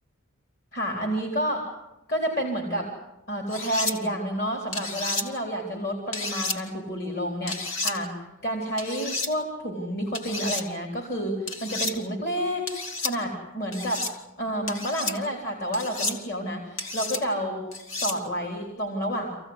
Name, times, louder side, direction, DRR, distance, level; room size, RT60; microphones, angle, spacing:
voice 1, 0.7-1.7 2.1-2.9 3.3-8.1 8.4-12.6 13.0-14.1 14.4-17.6 17.9-19.3, equal, 45° left, 1 dB, 4.0 m, -29 dB
sound 1, 3.5-3.9 4.7-5.2 6.1-6.6 7.5-7.9 8.8-9.3 10.1-10.6 11.5-11.9 12.7-13.1 13.7-14.1 14.7-15.1 15.7-16.2 16.8-17.2 17.7-18.2, left 3 dB, 70° left, 2.4 m, -31 dB
27.0 x 16.0 x 9.7 m, 0.93 s
head